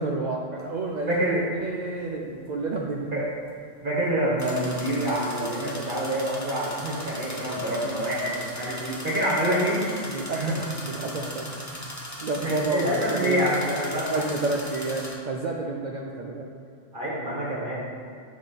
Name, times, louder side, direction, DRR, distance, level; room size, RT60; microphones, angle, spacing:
voice 1, 0.0-1.2 1.6-3.1 10.1-10.4 10.8-11.5 12.2-13.5 13.9-16.5, right 3 dB, 80° right, -1 dB, 0.4 m, -30 dB
sound 1, 0.6-0.7 4.4-15.1, left 1 dB, 15° left, 0.6 m, -39 dB
voice 2, 1.1-1.4 3.1-3.3 3.8-10.5 10.9-11.3 12.4-14.2 16.9-17.8, right 1 dB, 45° right, -6 dB, 1.1 m, -27 dB
8.2 x 3.0 x 4.0 m, 2.3 s
omnidirectional pair, 1.3 m